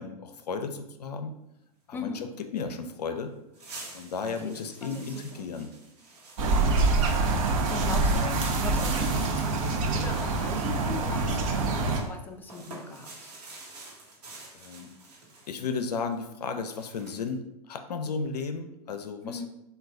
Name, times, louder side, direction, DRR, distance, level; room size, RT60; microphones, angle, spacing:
voice 1, 0.0-1.3 1.9-3.3 3.9-5.7 14.5-14.9 15.5-19.5, left 5 dB, 85° left, 8 dB, 0.4 m, -34 dB
voice 2, 1.9-2.3 4.2-5.5 6.4-6.9 7.4-13.1 19.2-19.5, left 3 dB, 10° left, 4 dB, 0.4 m, -40 dB
sound 1, 3.1-3.2 3.5-12.1 12.4-17.3, right 2 dB, 80° right, 1.0 m, -47 dB
sound 2, 6.4-12.0, right 3 dB, 60° right, 0.6 m, -25 dB
3.1 x 2.3 x 3.4 m, 0.88 s
hypercardioid pair, 105°, 20 cm